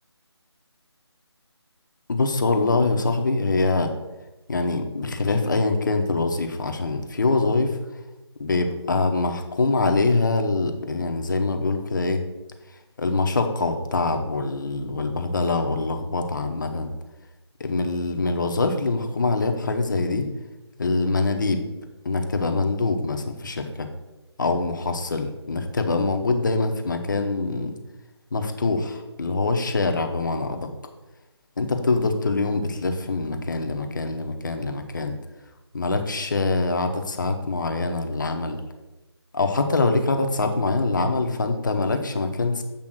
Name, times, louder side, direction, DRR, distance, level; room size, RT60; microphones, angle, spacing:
voice 1, 2.1-3.9 4.5-7.8 8.4-12.2 13.0-16.9 17.6-20.3 20.8-21.6 22.0-23.9 24.4-27.8 28.3-30.7 31.6-35.2 35.7-38.6 39.3-42.6, left 3 dB, 45° left, 5 dB, 0.8 m, -24 dB
7.6 x 3.4 x 6.2 m, 1.0 s
figure-of-eight pair, 155°, 14 cm